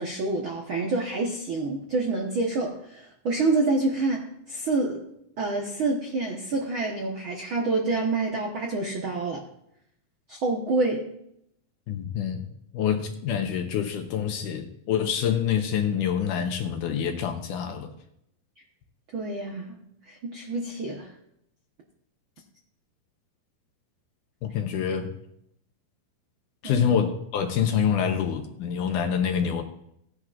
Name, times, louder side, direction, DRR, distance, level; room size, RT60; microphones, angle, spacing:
voice 1, 0.0-5.0 5.4-9.4 10.3-11.1 19.1-19.8 20.1-21.1 26.6-26.9, right 3 dB, 85° right, 0 dB, 1.1 m, -27 dB
voice 2, 11.9-12.4 12.7-17.9 24.4-25.1 26.6-29.6, left 8 dB, 75° left, 5 dB, 2.2 m, -26 dB
16.5 x 10.5 x 2.5 m, 0.76 s
omnidirectional pair, 4.2 m